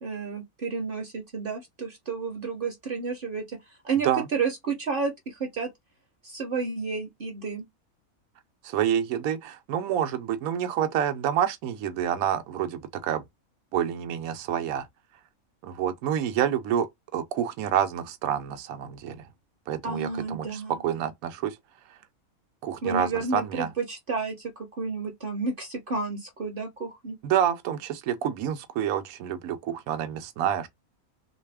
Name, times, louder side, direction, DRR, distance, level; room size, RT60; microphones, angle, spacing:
voice 1, 0.0-3.6 3.8-5.7 6.2-7.6 19.8-20.8 22.8-27.2, right 4 dB, 45° right, 0.8 m, -31 dB
voice 2, 8.6-13.2 13.7-14.9 15.6-16.9 17.1-19.2 19.7-21.6 22.6-23.7 27.2-30.7, right 9 dB, 80° right, 1.1 m, -28 dB
3.2 x 2.8 x 3.3 m
omnidirectional pair, 1.5 m